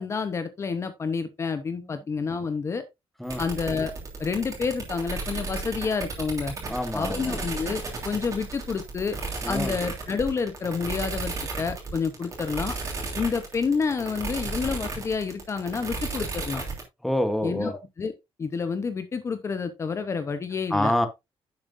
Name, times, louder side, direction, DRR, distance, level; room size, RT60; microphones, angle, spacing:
voice 1, 0.0-2.8 3.4-3.9 4.2-6.5 6.9-9.2 9.5-12.8 13.1-16.6 17.4-18.1 18.4-20.9, left 5 dB, 30° left, 0.8 m, -29 dB
sound 1, 3.3-16.8, right 3 dB, 30° right, 2.9 m, -34 dB
voice 2, 6.7-7.4 9.4-9.8 17.0-17.7 20.7-21.1, left 1 dB, ahead, 1.0 m, -26 dB
10.5 x 7.3 x 2.6 m
cardioid pair, 175°, 10 cm